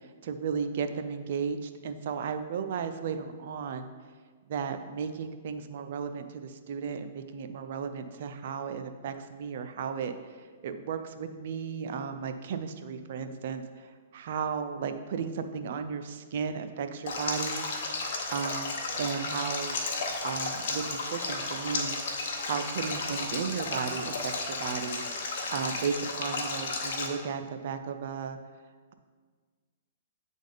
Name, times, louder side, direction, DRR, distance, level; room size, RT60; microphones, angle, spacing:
voice 1, 0.2-3.9 4.5-10.1 10.6-17.6 18.3-19.8 20.2-21.9 22.2-28.4, right 6 dB, 60° right, 8 dB, 0.5 m, -34 dB
Stream, 17.1-27.1, left 3 dB, 65° left, 0.9 m, -33 dB
8.1 x 3.6 x 3.9 m, 1.5 s
hypercardioid pair, 130°, 0 cm